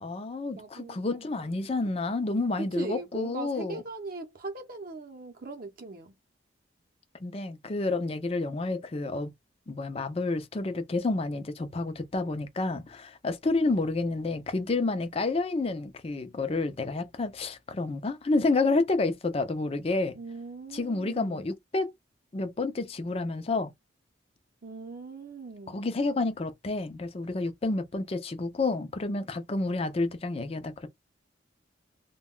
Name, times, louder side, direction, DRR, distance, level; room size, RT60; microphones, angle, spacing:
voice 1, 0.0-3.8 7.2-9.3 9.7-20.2 20.7-21.9 22.3-23.7 25.7-30.9, left 3 dB, 30° left, 0.4 m, -29 dB
voice 2, 0.5-1.5 2.8-6.1 20.1-21.5 24.6-26.1, right 3 dB, 50° right, 0.7 m, -40 dB
2.2 x 2.2 x 3.6 m
head